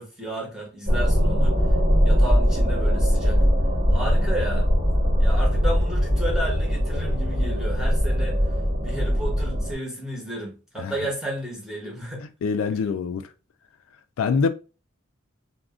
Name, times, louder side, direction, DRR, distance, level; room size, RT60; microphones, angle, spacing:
voice 1, 0.0-1.6 2.0-3.4 3.9-4.7 5.2-8.4 8.8-12.3, right 1 dB, 5° right, 1.1 m, -32 dB
sound 1, 0.9-9.7, equal, 40° right, 1.3 m, -21 dB
voice 2, 12.4-13.2 14.2-14.5, left 5 dB, 85° left, 0.3 m, -24 dB
2.4 x 2.1 x 3.6 m
head